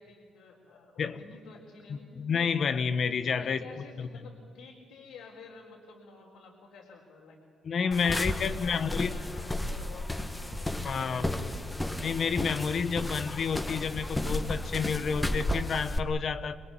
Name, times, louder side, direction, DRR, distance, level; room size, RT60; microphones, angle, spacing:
voice 1, 0.0-2.3 3.4-7.4 7.8-10.7 11.0-11.7, left 4 dB, 85° left, -3 dB, 4.3 m, -50 dB
voice 2, 2.1-3.6 4.0-4.1 7.6-9.1 10.8-11.4 12.0-16.6, left 6 dB, 55° left, 11 dB, 1.4 m, -29 dB
sound 1, 7.9-16.0, left 1 dB, 10° left, 1.8 m, -33 dB
26.5 x 21.0 x 8.8 m, 2.2 s
cardioid pair, 90°, 0 cm